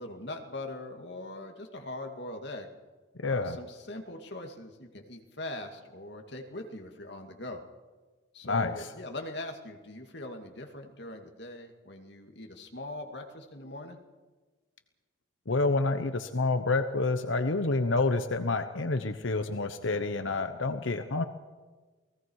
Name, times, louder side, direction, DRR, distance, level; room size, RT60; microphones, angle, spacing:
voice 1, 0.0-2.7 3.2-7.6 8.3-14.0, left 1 dB, 55° left, 3 dB, 2.4 m, -41 dB
voice 2, 3.2-3.6 8.5-8.9 15.5-21.2, left 3 dB, 75° left, 8 dB, 1.0 m, -28 dB
29.0 x 19.5 x 4.8 m, 1.3 s
head